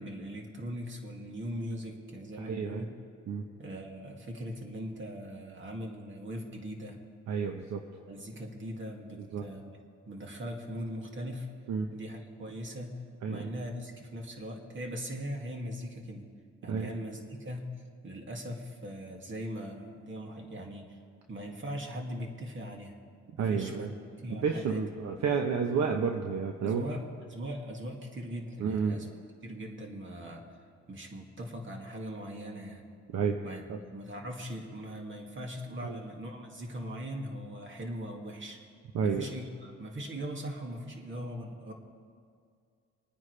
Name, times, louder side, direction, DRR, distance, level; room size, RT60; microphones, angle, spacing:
voice 1, 0.0-2.9 3.6-7.0 8.1-9.7 10.0-11.5 11.9-12.9 13.3-16.3 16.6-17.6 18.0-21.0 21.3-23.0 23.4-23.9 24.2-25.2 26.6-27.0 27.3-29.1 29.4-30.4 30.9-32.8 33.4-33.6 33.9-38.6 39.0-41.7, equal, 40° right, 1 dB, 2.3 m, -40 dB
voice 2, 2.4-2.8 3.3-3.4 7.3-7.8 9.3-9.4 11.7-11.9 13.2-13.5 16.7-16.9 23.4-23.9 24.3-26.8 28.6-29.0 33.1-33.4 33.7-33.8 35.8-36.0 38.9-39.3, right 6 dB, 65° right, 3 dB, 1.0 m, -30 dB
26.5 x 9.8 x 3.3 m, 2.3 s
cardioid pair, 90°, 30 cm